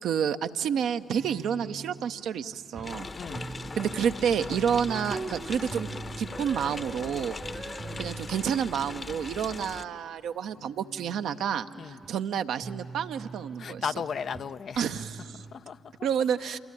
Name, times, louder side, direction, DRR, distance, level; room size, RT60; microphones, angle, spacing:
voice 1, 0.0-3.1 3.8-5.9 6.2-7.4 8.0-13.9 14.8-15.4 16.0-16.6, right 8 dB, 65° right, 0.7 m, -29 dB
sound 1, 1.1-9.9 10.5-15.6, right 3 dB, 30° right, 0.7 m, -43 dB
sound 2, 2.8-9.8, left 3 dB, 35° left, 1.1 m, -40 dB
voice 2, 3.1-3.5 7.8-8.1 11.7-12.0 13.6-16.1 16.4-16.6, left 6 dB, 55° left, 0.6 m, -37 dB
27.5 x 21.5 x 10.0 m
hypercardioid pair, 40°, 0 cm